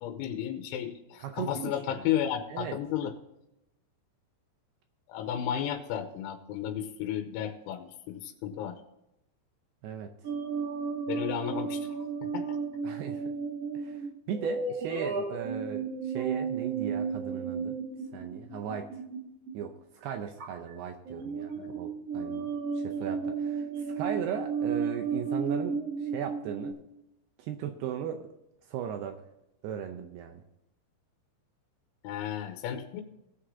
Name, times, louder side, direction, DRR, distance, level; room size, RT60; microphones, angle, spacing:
voice 1, 0.0-3.1 5.1-8.8 11.1-11.9 12.2-12.6 21.5-21.7 32.0-33.0, left 10 dB, 90° left, 6 dB, 3.2 m, -33 dB
voice 2, 1.2-1.7 2.0-2.1 2.5-2.8 9.8-10.1 12.8-13.2 13.7-17.8 18.1-19.0 19.5-22.5 22.8-26.8 27.4-28.3 28.7-29.2 29.6-30.4, right 8 dB, 80° right, 6 dB, 2.3 m, -37 dB
sound 1, 10.2-19.6 20.4-20.7 21.1-26.7, right 5 dB, 40° right, 3.0 m, -33 dB
18.5 x 6.6 x 3.8 m, 0.87 s
omnidirectional pair, 5.4 m